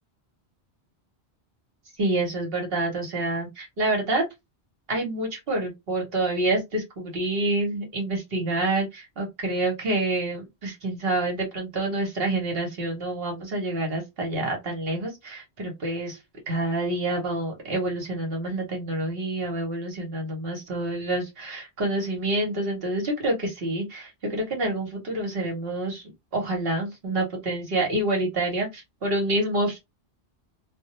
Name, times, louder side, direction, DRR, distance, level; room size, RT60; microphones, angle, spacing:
voice 1, 2.0-4.2 4.9-16.2 16.5-29.8, right 2 dB, 60° right, 1.0 m, -27 dB
2.2 x 2.1 x 2.8 m
omnidirectional pair, 1.1 m